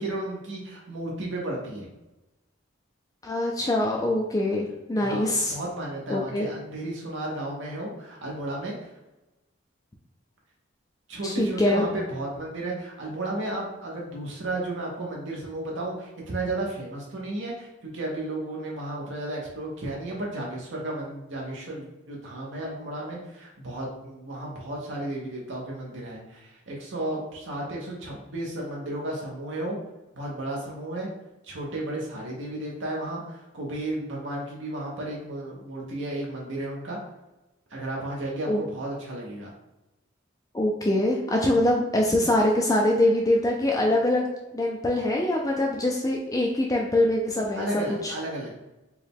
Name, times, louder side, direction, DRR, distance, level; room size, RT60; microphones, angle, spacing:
voice 1, 0.0-1.9 5.0-8.9 11.1-29.8 30.1-31.1 31.4-37.0 37.7-39.5 47.6-48.6, right 1 dB, 65° right, -3 dB, 0.8 m, -33 dB
voice 2, 3.2-5.5 6.1-6.5 11.2-11.9 38.5-38.6 40.5-44.3 44.5-48.1, left 1 dB, 15° left, -1 dB, 0.3 m, -24 dB
4.6 x 2.2 x 3.4 m, 1.0 s
head